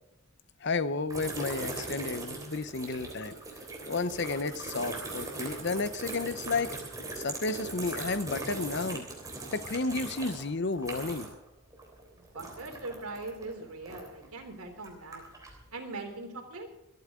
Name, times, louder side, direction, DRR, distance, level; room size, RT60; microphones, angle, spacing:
voice 1, 0.6-3.4 3.9-6.8 7.2-9.1 9.5-11.3, left 3 dB, 50° left, 14 dB, 0.8 m, -32 dB
sound 1, 1.1-11.5 11.7-14.3 14.8-15.6, right 3 dB, 15° right, 3.5 m, -40 dB
voice 2, 12.2-15.2 15.7-16.7, right 3 dB, 80° right, 4 dB, 3.3 m, -41 dB
25.5 x 9.5 x 3.7 m, 0.97 s
head